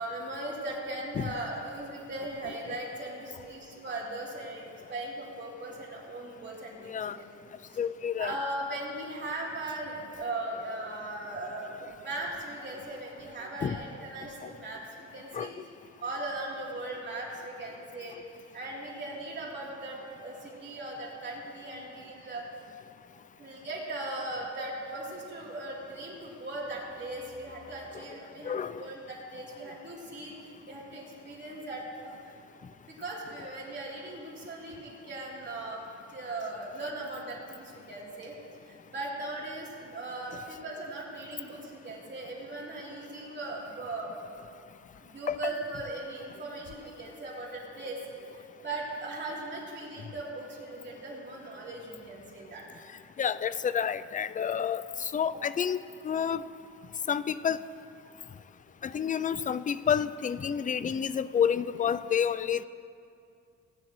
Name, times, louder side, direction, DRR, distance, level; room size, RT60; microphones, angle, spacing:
voice 1, 0.0-7.3 7.7-7.8 8.2-15.5 16.0-22.4 23.4-30.3 30.7-32.4 32.9-35.8 36.1-38.3 38.6-44.2 45.0-48.0 48.3-52.6 55.3-55.4, right 2 dB, 35° right, -5 dB, 3.4 m, -38 dB
voice 2, 6.8-7.2 7.8-8.3 13.6-13.8 14.4-14.5 15.3-15.5 28.4-28.9 45.3-45.4 53.2-55.8 56.0-56.4 57.1-57.6 58.8-62.6, left 8 dB, 25° left, 15 dB, 0.4 m, -29 dB
18.0 x 9.9 x 3.1 m, 2.5 s
cardioid pair, 90°, 30 cm